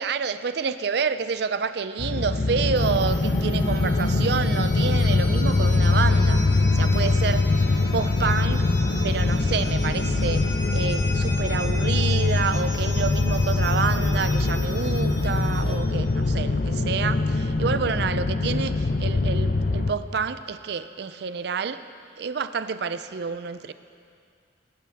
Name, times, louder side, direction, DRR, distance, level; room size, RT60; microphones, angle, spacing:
voice 1, 0.0-6.4 6.7-7.5 7.9-8.7 9.0-10.4 10.7-21.8 22.2-23.7, right 5 dB, 60° right, 12 dB, 0.4 m, -28 dB
sound 1, 2.0-19.9, left 3 dB, 50° left, 0.6 m, -23 dB
sound 2, 2.8-15.8, left 1 dB, 15° left, 1.6 m, -38 dB
21.5 x 10.5 x 3.5 m, 2.3 s
head